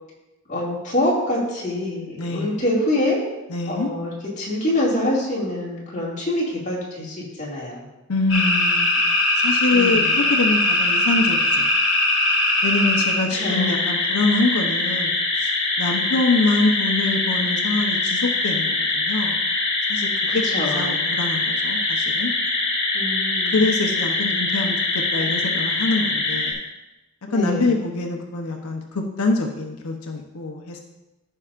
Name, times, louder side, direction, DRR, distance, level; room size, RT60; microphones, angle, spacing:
voice 1, 0.5-3.2 3.7-7.9 9.7-10.2 13.3-13.8 20.3-21.0 22.9-23.7 25.3-25.5 27.3-27.9, left 1 dB, 35° left, -6 dB, 2.2 m, -25 dB
voice 2, 2.2-2.6 3.5-3.9 8.1-9.0 9.4-11.7 12.6-19.4 19.9-22.3 23.5-26.5 27.3-30.8, left 3 dB, 85° left, 2 dB, 0.8 m, -24 dB
sound 1, 8.3-26.5, left 2 dB, 55° left, 1.8 m, -22 dB
14.5 x 5.5 x 2.5 m, 1.0 s
head